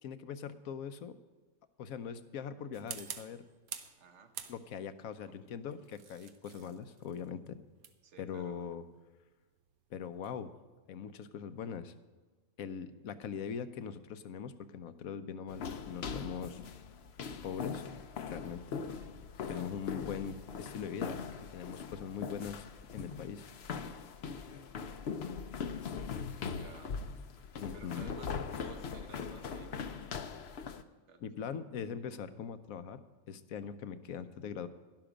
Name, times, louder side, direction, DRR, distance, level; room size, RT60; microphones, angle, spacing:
voice 1, 0.0-1.1 1.8-3.4 4.5-7.6 8.2-8.8 9.9-10.5 10.9-11.9 12.6-16.6 17.4-17.8 18.2-18.9 19.5-22.6 22.9-23.5 27.6-28.1 31.2-34.7, left 7 dB, 75° left, 12 dB, 1.2 m, -41 dB
sound 1, 2.7-4.0 4.3-5.0 5.7-10.4, right 8 dB, 85° right, 1.3 m, -48 dB
voice 2, 4.0-4.4 5.2-5.4 8.0-8.7 18.8-19.1 19.5-19.9 26.4-26.9 27.7-30.3 31.1-31.5 34.2-34.3, right 4 dB, 55° right, 8 dB, 1.3 m, -55 dB
sound 2, 15.5-30.8, left 6 dB, 60° left, 0.8 m, -41 dB
12.0 x 11.5 x 5.1 m, 1.3 s
omnidirectional pair, 1.5 m